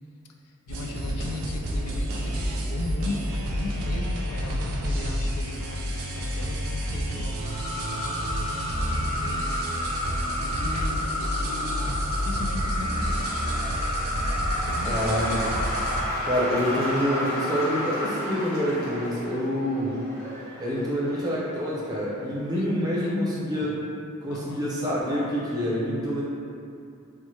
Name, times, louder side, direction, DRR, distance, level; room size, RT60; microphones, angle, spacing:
voice 1, 0.7-13.3 14.5-15.0 22.6-23.8 24.3-24.7, left 2 dB, 90° left, 2 dB, 0.3 m, -37 dB
sound 1, 0.7-16.0, equal, 75° right, 0.4 m, -30 dB
sound 2, 7.4-18.3, left 2 dB, 25° left, 0.7 m, -31 dB
Cheering / Applause / Crowd, 9.1-22.4, equal, 45° left, 1.1 m, -37 dB
voice 2, 14.8-15.6 16.2-20.0 20.6-23.8 24.2-26.2, equal, 20° right, -7 dB, 0.5 m, -27 dB
2.8 x 2.1 x 3.0 m, 2.5 s
head